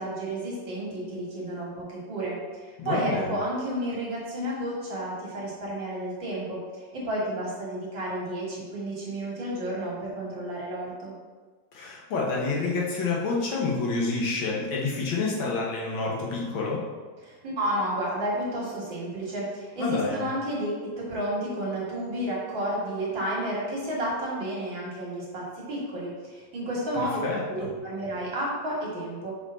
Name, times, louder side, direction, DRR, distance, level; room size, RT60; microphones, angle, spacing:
voice 1, 0.0-2.4 2.6-6.6 6.9-11.1 17.2-29.3, right 1 dB, 70° right, -5 dB, 2.6 m, -31 dB
voice 2, 2.8-3.3 11.7-16.8 19.8-20.2 27.0-27.7, left 3 dB, 80° left, -3 dB, 2.1 m, -28 dB
6.3 x 4.9 x 4.3 m, 1.4 s
omnidirectional pair, 2.1 m